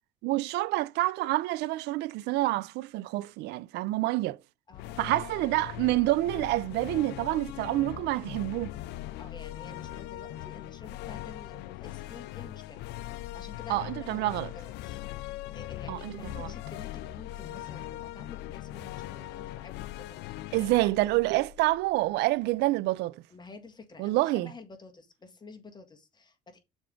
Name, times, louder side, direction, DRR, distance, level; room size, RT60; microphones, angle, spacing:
voice 1, 0.2-4.4 5.0-8.8 13.7-14.5 15.9-16.5 20.5-23.2 24.0-24.5, right 18 dB, 85° right, 0.4 m, -28 dB
sound 1, 4.7-22.2, left 15 dB, 85° left, 0.5 m, -40 dB
voice 2, 4.7-5.3 9.2-20.9 23.3-26.6, left 4 dB, 25° left, 1.7 m, -50 dB
7.0 x 3.5 x 5.1 m
cardioid pair, 110°, 17 cm